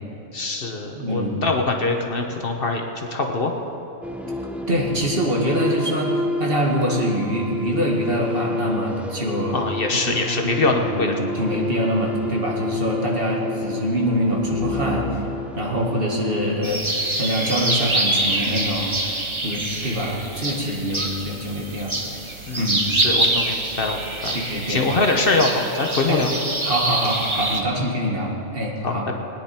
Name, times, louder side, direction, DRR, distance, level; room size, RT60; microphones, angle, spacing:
voice 1, 0.3-3.5 9.5-11.1 22.5-24.4 24.7-26.3 28.8-29.2, left 3 dB, 50° left, 3 dB, 1.2 m, -23 dB
voice 2, 1.0-1.5 4.7-6.1 6.4-9.6 10.1-15.2 15.6-16.8 17.2-18.9 19.4-22.0 22.6-22.9 24.3-24.8 26.1-26.3 26.6-29.1, equal, 50° right, -2 dB, 2.1 m, -24 dB
sound 1, 4.0-16.5, left 2 dB, ahead, 0.5 m, -29 dB
sound 2, 16.6-27.6, right 2 dB, 25° right, 1.2 m, -25 dB
21.0 x 10.0 x 4.4 m, 2.8 s
omnidirectional pair, 1.2 m